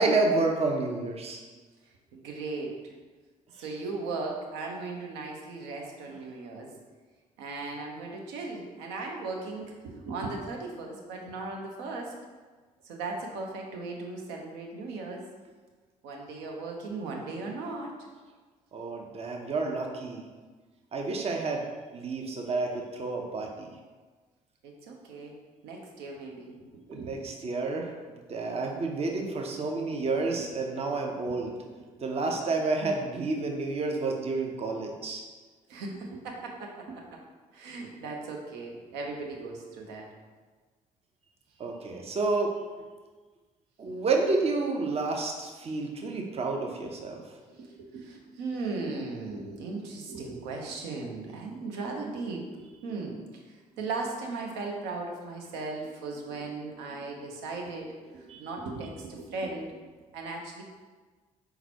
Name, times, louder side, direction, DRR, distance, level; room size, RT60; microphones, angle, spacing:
voice 1, 0.0-1.4 18.7-20.2 20.9-21.7 21.9-23.7 26.9-27.9 28.3-31.5 32.0-35.2 41.6-42.6 43.8-47.2 58.3-58.4, right 3 dB, 35° right, 2 dB, 0.7 m, -29 dB
voice 2, 2.1-2.9 3.5-6.7 7.4-12.1 12.8-15.2 16.0-17.9 24.6-25.3 25.6-27.2 30.4-30.5 31.3-31.4 31.6-31.8 35.7-37.2 37.5-40.1 46.8-46.9 47.5-59.7 60.1-60.6, right 3 dB, 65° right, 1 dB, 0.8 m, -37 dB
4.5 x 3.9 x 2.9 m, 1.4 s
figure-of-eight pair, 45°, 19 cm